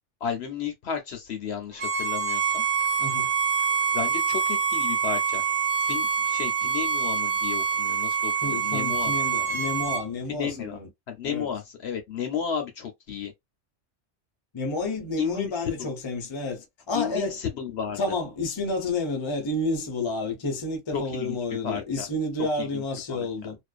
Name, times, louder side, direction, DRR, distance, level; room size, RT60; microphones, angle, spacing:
voice 1, 0.2-2.6 3.9-5.4 5.8-9.1 10.3-10.8 11.1-13.3 15.2-15.5 16.9-18.0 20.9-21.4 21.6-22.1 22.4-22.8 23.1-23.3, left 7 dB, 65° left, 0.8 m, -33 dB
Bowed string instrument, 1.8-10.0, right 6 dB, 80° right, 1.2 m, -26 dB
voice 2, 3.0-3.3 8.4-10.9 11.2-11.5 14.5-17.4 18.0-23.6, left 2 dB, 30° left, 0.6 m, -30 dB
2.5 x 2.1 x 2.4 m
omnidirectional pair, 1.3 m